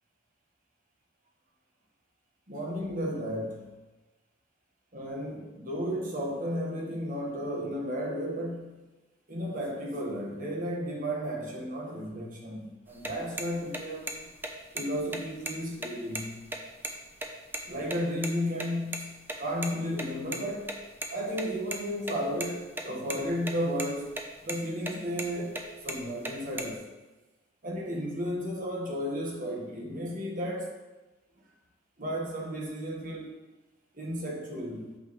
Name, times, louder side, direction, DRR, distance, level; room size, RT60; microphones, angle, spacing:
voice 1, 2.5-3.7 4.9-8.8 9.3-14.3 14.7-16.4 17.7-20.8 21.1-24.2 24.4-26.9 27.6-30.7 32.0-33.4 33.9-34.9, equal, 45° right, -1 dB, 1.4 m, -33 dB
sound 1, 12.9-18.0 18.2-18.3 18.6-18.7 18.9-19.0 19.3-19.4 19.6-19.7 20.0-21.1 21.3-21.8 22.1-22.8 23.1-23.5 23.8-24.2 24.5-24.6 24.9-25.3 25.5-26.7, right 2 dB, 10° right, 0.6 m, -35 dB
8.3 x 5.9 x 3.1 m, 1.1 s
head